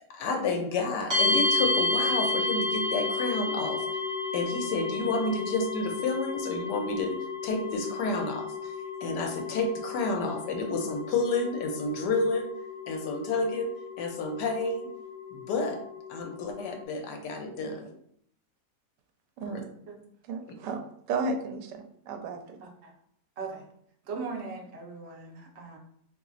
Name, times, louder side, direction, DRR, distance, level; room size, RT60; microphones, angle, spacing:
voice 1, 0.1-3.8 4.3-7.2 7.4-8.7 9.0-12.5 12.9-13.7 14.0-14.9 15.3-15.8 16.1-17.9 19.5-19.6, left 3 dB, 90° left, 4 dB, 1.3 m, -30 dB
sound 1, 1.1-16.8, left 3 dB, 15° right, 0.8 m, -32 dB
voice 2, 19.4-19.7 20.2-20.8 21.1-22.6, right 3 dB, 90° right, 5 dB, 1.2 m, -33 dB
voice 3, 24.1-25.8, right 4 dB, 50° right, 0 dB, 0.9 m, -38 dB
3.8 x 3.0 x 2.4 m, 0.67 s
omnidirectional pair, 1.8 m